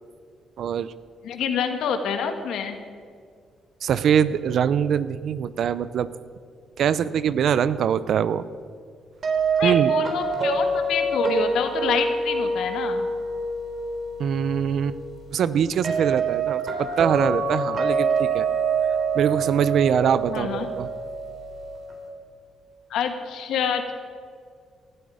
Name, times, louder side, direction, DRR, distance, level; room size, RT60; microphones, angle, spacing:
voice 1, 0.6-0.9 3.8-6.1 6.8-8.5 9.6-9.9 14.2-15.0 15.3-18.5 19.1-20.9, right 8 dB, 65° right, 16 dB, 0.6 m, -23 dB
voice 2, 1.2-2.8 9.6-13.1 20.3-20.7 22.9-23.9, left 7 dB, 80° left, 7 dB, 1.5 m, -27 dB
sound 1, 9.2-22.1, right 4 dB, 50° right, 3.5 m, -26 dB
18.5 x 12.5 x 5.0 m, 2.2 s
cardioid pair, 90°, 0 cm